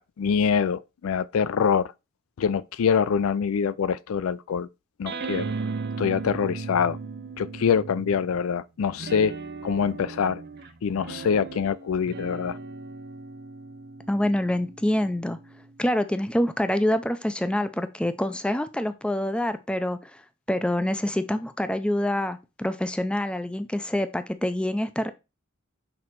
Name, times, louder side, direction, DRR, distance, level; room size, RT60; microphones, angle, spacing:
voice 1, 0.0-1.9 2.4-4.7 5.0-5.5 6.0-7.0 7.4-9.3 9.6-10.4 10.8-12.6, left 6 dB, 75° left, 0.4 m, -25 dB
sound 1, 5.1-8.4 9.0-15.7, right 4 dB, 50° right, 0.5 m, -37 dB
voice 2, 14.1-15.4 15.8-20.2 20.5-25.1, left 1 dB, 5° left, 0.4 m, -26 dB
6.1 x 3.7 x 4.4 m
head